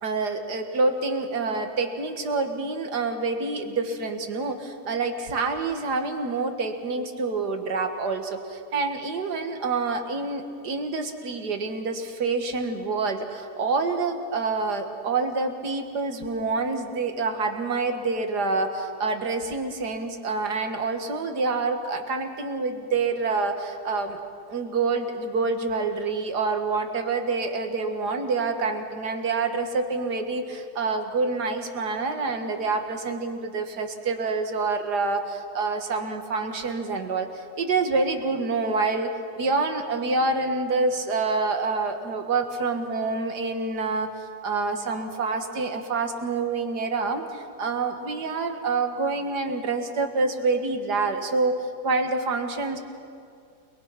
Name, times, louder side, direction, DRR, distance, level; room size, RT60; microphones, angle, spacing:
voice 1, 0.0-24.2 24.5-39.1 39.4-44.1 44.4-51.6 51.8-52.8, right 3 dB, 90° right, 6 dB, 2.2 m, -27 dB
29.5 x 21.0 x 5.9 m, 2.4 s
omnidirectional pair, 1.7 m